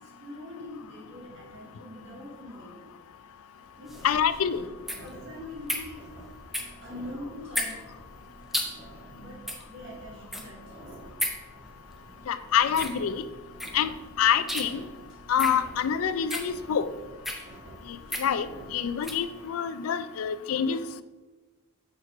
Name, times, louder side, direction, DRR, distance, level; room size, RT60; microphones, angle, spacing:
voice 1, 0.0-2.9 3.8-4.4 5.0-6.2 6.8-7.9 9.1-11.3, left 1 dB, 55° right, -2 dB, 1.9 m, -44 dB
sound 1, 3.6-19.5, right 1 dB, 90° right, 2.4 m, -50 dB
sound 2, 3.9-19.3, equal, ahead, 0.7 m, -36 dB
voice 2, 4.0-4.6 12.3-13.2 13.7-13.9 14.2-14.8 15.3-16.9 17.9-21.0, left 8 dB, 75° left, 14 dB, 0.4 m, -26 dB
6.2 x 4.5 x 4.8 m, 1.2 s
head